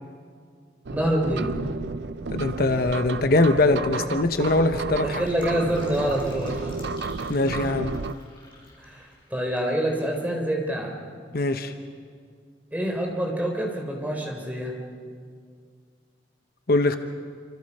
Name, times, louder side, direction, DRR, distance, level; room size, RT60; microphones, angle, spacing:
voice 1, 0.9-1.5 5.0-6.7 8.8-10.9 12.7-14.7, right 1 dB, 10° right, 0 dB, 4.1 m, -26 dB
sound 1, 0.9-8.2, right 4 dB, 70° right, 0.6 m, -32 dB
voice 2, 2.3-5.2 7.3-8.0 11.3-11.7 16.7-17.0, left 2 dB, 60° left, 8 dB, 1.0 m, -22 dB
Fill (with liquid), 5.0-9.8 10.0-10.1, left 2 dB, 30° left, 7.1 m, -49 dB
28.0 x 26.0 x 5.6 m, 2.1 s
head